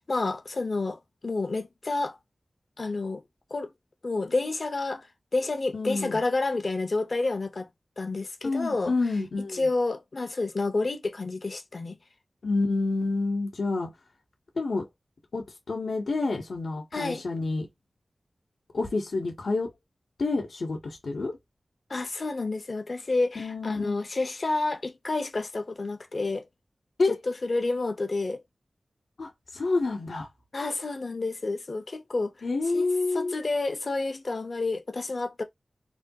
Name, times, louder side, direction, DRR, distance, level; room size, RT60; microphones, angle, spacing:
voice 1, 0.0-2.2 2.8-3.2 3.5-3.7 4.0-7.7 8.0-8.9 9.5-12.0 16.9-17.2 21.9-26.5 27.3-28.4 30.5-32.3 32.7-32.8 33.1-35.4, left 3 dB, 60° left, 0.6 m, -29 dB
voice 2, 5.7-6.2 8.4-9.7 12.4-13.9 14.5-14.9 15.3-17.7 18.7-19.7 20.2-21.4 23.3-24.0 27.0-27.1 29.2-30.3 32.4-33.4, left 3 dB, 85° left, 0.9 m, -28 dB
3.4 x 2.3 x 2.6 m
wide cardioid pair, 75°, 0 cm